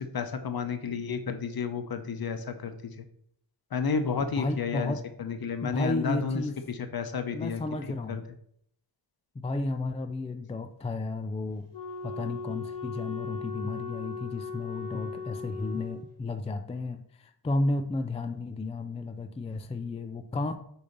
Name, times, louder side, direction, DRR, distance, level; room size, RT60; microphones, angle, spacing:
voice 1, 0.0-2.9 3.7-6.4 6.7-7.6 8.1-8.2, left 5 dB, 50° left, 8 dB, 0.7 m, -31 dB
voice 2, 4.4-5.0 5.6-6.6 7.3-8.3 9.4-11.7 12.0-20.6, left 2 dB, 15° left, 8 dB, 0.3 m, -32 dB
Wind instrument woodwind instrument, 11.7-16.0, left 5 dB, 70° left, 1.2 m, -38 dB
6.6 x 2.7 x 5.1 m, 0.69 s
wide cardioid pair, 95°, 45 cm